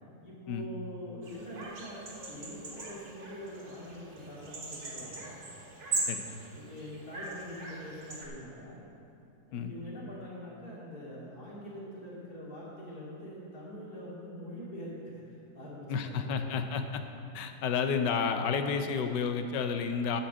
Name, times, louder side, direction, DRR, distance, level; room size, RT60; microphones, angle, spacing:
voice 1, 0.2-5.4 6.5-8.8 9.5-16.9, equal, 55° left, -7 dB, 3.0 m, -44 dB
sound 1, 1.2-8.3, right 2 dB, 85° right, 2.2 m, -40 dB
voice 2, 15.9-17.0 17.3-20.2, left 6 dB, 80° left, 7 dB, 1.3 m, -31 dB
9.6 x 5.7 x 7.4 m, 2.7 s
omnidirectional pair, 1.9 m